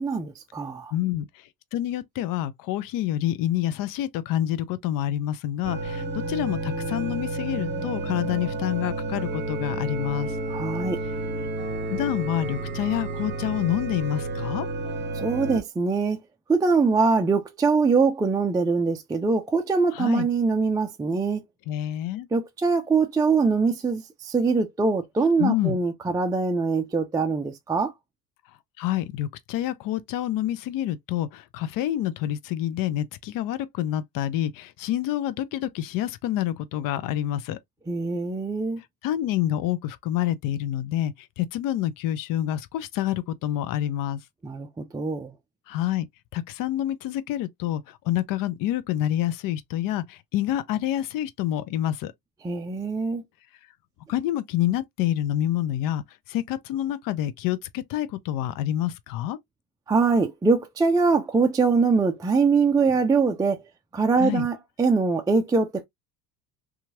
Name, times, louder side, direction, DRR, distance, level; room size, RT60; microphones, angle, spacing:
voice 1, 0.0-0.9 10.5-11.0 15.1-16.2 16.5-21.4 22.3-27.9 37.9-38.8 44.4-45.3 52.4-53.2 59.9-63.6 63.9-65.9, right 4 dB, 10° right, 0.4 m, -23 dB
voice 2, 0.9-10.4 11.9-14.7 19.9-20.3 21.7-22.3 25.4-25.8 28.8-37.6 39.0-44.2 45.7-46.1 46.3-52.1 54.1-59.4 64.2-64.5, left 12 dB, 50° left, 0.6 m, -27 dB
sound 1, 5.6-15.6, right 2 dB, 25° right, 0.9 m, -31 dB
2.9 x 2.4 x 2.7 m
supercardioid pair, 95°, 42 cm